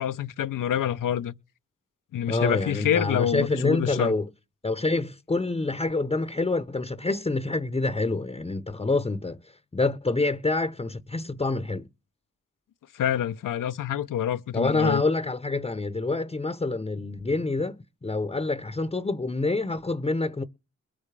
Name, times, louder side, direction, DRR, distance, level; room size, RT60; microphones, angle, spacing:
voice 1, 0.0-1.3 2.1-4.1 12.9-15.0, left 10 dB, 80° left, 0.7 m, -27 dB
voice 2, 2.3-4.2 4.6-9.4 9.7-11.8 14.5-17.8 18.0-20.4, left 3 dB, 20° left, 0.8 m, -27 dB
22.0 x 8.6 x 3.3 m
cardioid pair, 65°, 32 cm